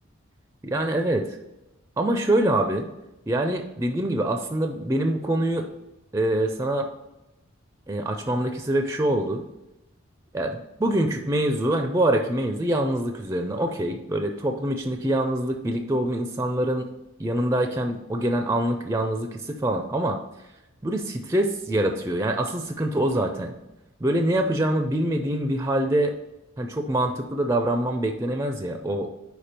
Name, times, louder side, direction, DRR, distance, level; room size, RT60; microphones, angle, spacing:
voice 1, 0.6-1.4 2.0-2.9 3.3-5.7 6.1-6.9 7.9-9.4 10.3-16.9 17.2-20.2 20.8-23.5 24.0-26.1 26.6-29.1, right 1 dB, 15° right, 5 dB, 0.4 m, -25 dB
5.0 x 4.7 x 4.3 m, 0.95 s
head